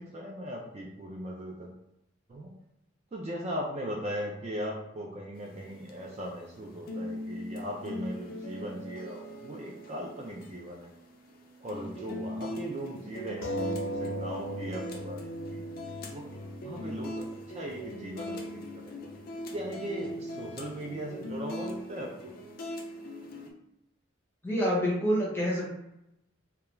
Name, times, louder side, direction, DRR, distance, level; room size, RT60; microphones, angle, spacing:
voice 1, 0.0-1.7 2.3-2.5 3.1-10.9 11.6-15.2 15.5-15.7 16.1-16.3 16.6-17.3 17.5-18.9 19.5-22.3, equal, 30° right, -2 dB, 0.4 m, -38 dB
sound 1, 5.4-23.5, left 1 dB, 45° left, 0.4 m, -41 dB
sound 2, 13.4-18.4 19.2-19.3 19.6-19.7, right 1 dB, 90° left, 0.7 m, -38 dB
voice 2, 24.4-25.6, equal, 10° left, -5 dB, 0.7 m, -27 dB
2.3 x 2.2 x 3.0 m, 0.84 s
head